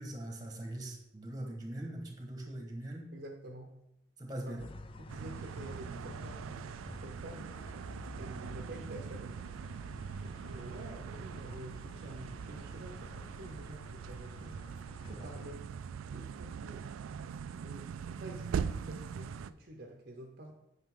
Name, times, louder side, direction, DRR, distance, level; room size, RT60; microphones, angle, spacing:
voice 1, 0.0-3.1 4.2-4.7 15.1-15.3, right 1 dB, 20° right, 2 dB, 1.3 m, -41 dB
voice 2, 3.1-3.8 4.5-4.6 5.0-9.4 10.2-14.7 15.0-15.7 16.1-16.9 17.6-20.5, right 1 dB, 50° right, 3 dB, 0.8 m, -49 dB
sound 1, 4.6-15.6, left 2 dB, 25° left, 0.4 m, -51 dB
sound 2, 5.1-19.5, right 7 dB, 85° right, 0.3 m, -42 dB
9.0 x 5.7 x 3.7 m, 0.84 s
head